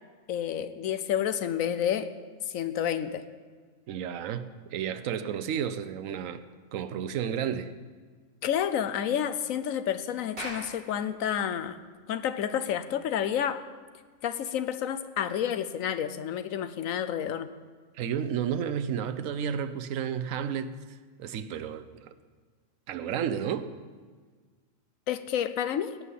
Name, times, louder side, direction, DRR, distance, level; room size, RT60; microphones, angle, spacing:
voice 1, 0.3-2.1 2.5-3.2 8.4-11.8 12.1-13.6 14.2-17.5 25.1-26.0, left 9 dB, 80° left, 12 dB, 1.1 m, -30 dB
voice 2, 3.9-6.4 6.7-7.7 17.9-20.8 21.2-22.1 22.9-23.7, right 8 dB, 75° right, 11 dB, 1.1 m, -32 dB
Clapping, 10.4-15.0, equal, 40° right, 3.4 m, -45 dB
16.5 x 5.7 x 8.3 m, 1.5 s
omnidirectional pair, 1.4 m